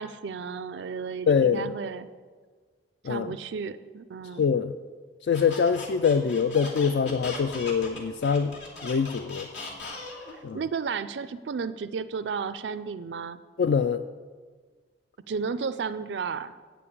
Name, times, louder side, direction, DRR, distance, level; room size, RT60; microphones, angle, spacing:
voice 1, 0.0-2.1 3.0-4.5 10.5-13.4 15.3-16.5, right 5 dB, 85° right, 12 dB, 0.4 m, -33 dB
voice 2, 1.3-1.7 3.0-3.3 4.4-4.7 5.3-8.5 8.8-9.5 10.4-10.6 13.6-14.0, left 6 dB, 70° left, 11 dB, 0.3 m, -24 dB
Squeak, 5.3-10.4, left 3 dB, 85° left, 2.6 m, -39 dB
8.9 x 6.8 x 8.5 m, 1.5 s
head